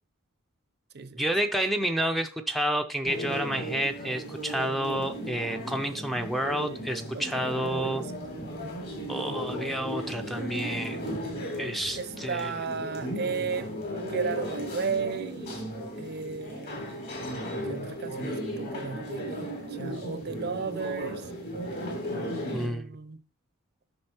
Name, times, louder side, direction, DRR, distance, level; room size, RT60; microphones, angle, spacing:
voice 1, 1.2-8.0 9.1-11.0 11.6-12.6 22.5-23.0, right 1 dB, ahead, 0.5 m, -30 dB
sound 1, 3.0-22.7, equal, 50° left, 3.0 m, -36 dB
voice 2, 7.1-8.3 12.0-13.8 14.0-15.5 15.9-16.8 17.7-21.2 22.4-23.2, right 5 dB, 50° right, 0.6 m, -34 dB
7.8 x 6.1 x 2.9 m
head